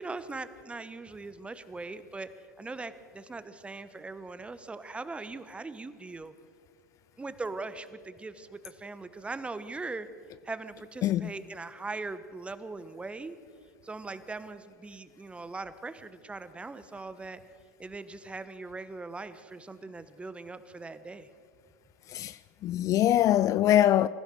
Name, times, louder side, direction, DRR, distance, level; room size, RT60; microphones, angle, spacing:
voice 1, 0.0-2.3 2.6-6.3 7.2-10.1 10.4-13.4 13.8-17.4 17.8-21.3, right 3 dB, 10° right, 1.2 m, -40 dB
voice 2, 11.0-11.3 22.1-24.1, left 12 dB, 35° left, 0.5 m, -23 dB
26.0 x 15.5 x 6.6 m
figure-of-eight pair, 85°, 9 cm